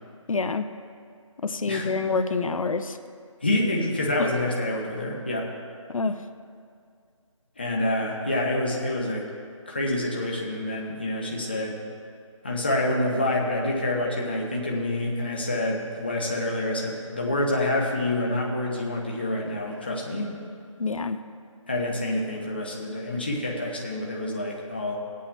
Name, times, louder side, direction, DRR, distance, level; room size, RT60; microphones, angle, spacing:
voice 1, 0.3-0.7 1.4-3.0 5.9-6.1 20.8-21.2, left 4 dB, 85° left, 10 dB, 0.6 m, -26 dB
voice 2, 3.4-5.5 7.6-9.2 9.7-11.8 12.4-20.4 21.7-24.9, left 1 dB, 20° left, -2 dB, 0.6 m, -27 dB
22.0 x 8.5 x 2.2 m, 2.3 s
figure-of-eight pair, 175°, 17 cm